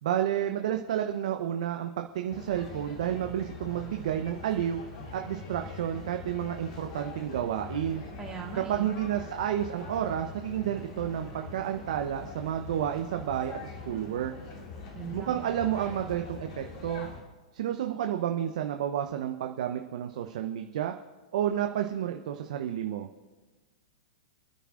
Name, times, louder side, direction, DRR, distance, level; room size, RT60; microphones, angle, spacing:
voice 1, 0.0-4.8 5.1-8.0 8.5-14.3 15.1-17.1 17.5-20.9 21.3-23.1, right 10 dB, 65° right, 5 dB, 0.9 m, -31 dB
sound 1, 2.3-17.2, left 4 dB, 55° left, 3.1 m, -43 dB
voice 2, 8.2-8.9 14.9-15.4, right 6 dB, 20° right, 1 dB, 1.7 m, -39 dB
28.0 x 10.0 x 2.6 m, 1.3 s
hypercardioid pair, 105°, 4 cm